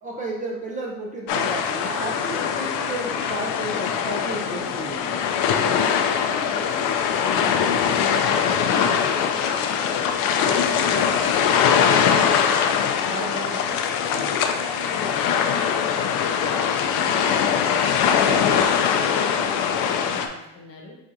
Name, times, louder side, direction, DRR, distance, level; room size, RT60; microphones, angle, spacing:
voice 1, 0.0-5.2 13.1-13.6 14.1-14.4, right 2 dB, 20° right, -2 dB, 0.5 m, -32 dB
sound 1, 1.3-20.3, left 7 dB, 75° left, 0.5 m, -22 dB
voice 2, 4.3-8.8 9.1-13.8 14.3-18.5 19.0-21.0, left 2 dB, 40° left, -1 dB, 1.0 m, -40 dB
7.0 x 2.5 x 2.6 m, 0.95 s
cardioid pair, 145°, 36 cm